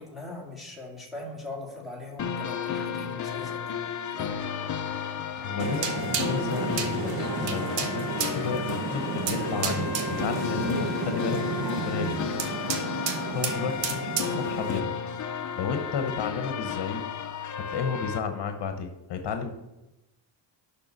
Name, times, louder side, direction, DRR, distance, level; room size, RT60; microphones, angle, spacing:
voice 1, 0.0-3.8 4.1-4.3 13.8-14.1, left 3 dB, ahead, -4 dB, 2.1 m, -40 dB
sound 1, 2.2-18.2, left 7 dB, 40° left, 0.6 m, -33 dB
voice 2, 5.4-12.2 12.9-17.0 17.5-19.5, left 6 dB, 65° left, 6 dB, 1.0 m, -33 dB
sound 2, 5.6-14.8, right 6 dB, 70° right, 1.1 m, -31 dB
6.8 x 5.8 x 6.5 m, 0.96 s
cardioid pair, 145°, 44 cm